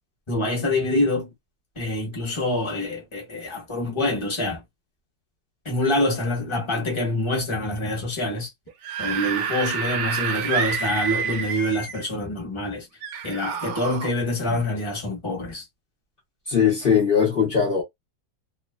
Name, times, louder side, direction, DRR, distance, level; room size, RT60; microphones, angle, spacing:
voice 1, 0.3-1.3 1.8-4.6 5.6-8.5 9.0-12.9 13.2-15.6, left 1 dB, 25° left, 0.7 m, -26 dB
Screaming / Screech, 8.7-12.1 13.0-14.1, right 6 dB, 75° right, 1.1 m, -28 dB
voice 2, 16.5-17.8, left 7 dB, 60° left, 0.5 m, -20 dB
3.0 x 2.0 x 2.2 m
omnidirectional pair, 2.0 m